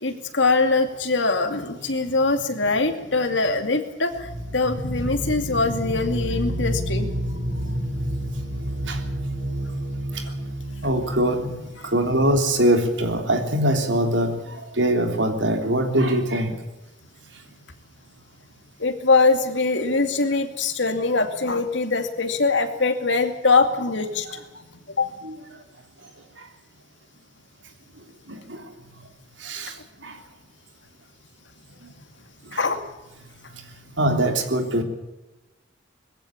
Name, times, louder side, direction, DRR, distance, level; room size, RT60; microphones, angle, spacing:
voice 1, 0.0-7.2 10.2-10.3 11.8-11.9 18.8-24.6 25.0-25.1 32.5-32.8, left 3 dB, 75° left, 7 dB, 2.5 m, -22 dB
sound 1, 4.1-12.8, equal, 65° right, 3.5 m, -30 dB
voice 2, 10.8-11.5 11.8-16.5 25.2-25.3 26.4-26.5 28.3-28.6 29.4-30.2 32.5-32.6 33.5-33.6 34.0-34.8, right 1 dB, 80° right, 5 dB, 3.4 m, -23 dB
21.0 x 15.5 x 8.8 m, 1.1 s
head